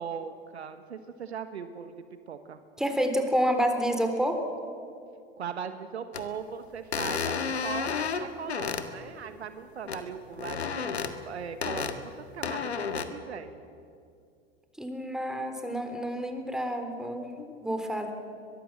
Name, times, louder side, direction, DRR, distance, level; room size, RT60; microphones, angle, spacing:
voice 1, 0.0-2.6 5.4-13.5, right 7 dB, 80° right, 9 dB, 1.4 m, -39 dB
voice 2, 2.8-4.4 14.8-18.1, equal, ahead, 5 dB, 3.8 m, -29 dB
sound 1, 6.1-6.3 6.9-8.9 9.9-10.0 10.4-11.1 11.6-12.0 12.4-13.0, left 6 dB, 85° left, 1.7 m, -31 dB
22.5 x 22.5 x 7.7 m, 2.4 s
hypercardioid pair, 85°, 32 cm